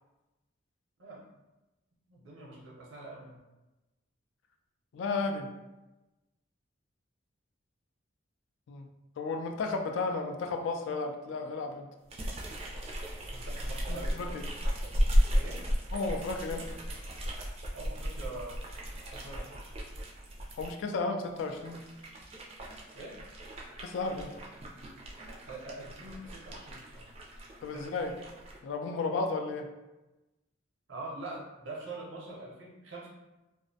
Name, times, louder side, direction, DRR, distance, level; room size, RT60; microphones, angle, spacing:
voice 1, 2.1-3.4 13.3-14.4 14.8-15.0 15.3-15.6 17.7-18.6 19.1-19.7 22.9-23.2 25.5-27.1 27.7-27.8 30.9-33.1, right 2 dB, 90° right, -3 dB, 0.6 m, -44 dB
voice 2, 4.9-5.5 8.7-8.9 9.2-11.9 13.9-14.4 15.9-16.8 20.6-21.8 23.8-24.3 27.6-28.1 28.6-29.7, left 3 dB, 75° left, 4 dB, 0.3 m, -33 dB
sound 1, 12.1-20.7 21.3-28.6, equal, 30° right, 0.3 m, -34 dB
2.4 x 2.0 x 2.6 m, 1.0 s
head